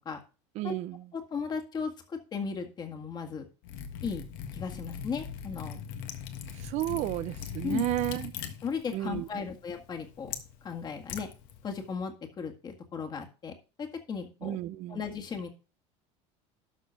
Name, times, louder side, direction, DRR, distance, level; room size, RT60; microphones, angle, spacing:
voice 1, 0.6-1.0 6.5-8.3 8.9-9.3 14.4-15.0, right 16 dB, 50° right, 0.6 m, -32 dB
voice 2, 1.1-3.5 4.0-4.2 4.5-5.8 6.9-7.0 7.6-7.8 8.6-10.3 10.6-11.3 11.6-14.6 14.9-15.5, left 6 dB, 30° left, 1.8 m, -36 dB
Liquid, 3.6-11.9, left 8 dB, 65° left, 1.5 m, -41 dB
12.5 x 4.4 x 5.7 m
supercardioid pair, 130°, 15 cm